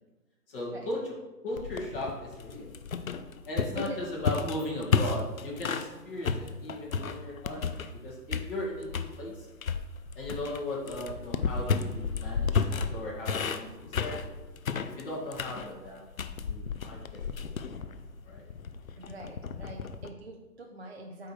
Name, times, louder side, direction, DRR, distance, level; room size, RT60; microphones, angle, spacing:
voice 1, 0.5-1.0 1.4-2.7 3.5-9.5 10.2-14.2 14.8-16.0 16.4-17.5 18.3-18.4, left 1 dB, 35° left, -5 dB, 2.2 m, -37 dB
sound 1, 1.6-5.9 6.2-8.0 8.3-9.1 9.6-20.1, left 5 dB, 55° left, 0.6 m, -32 dB
voice 2, 3.8-4.1 19.0-21.3, right 1 dB, 40° right, 1 dB, 0.5 m, -43 dB
8.7 x 3.4 x 4.6 m, 1.2 s
figure-of-eight pair, 155°, 49 cm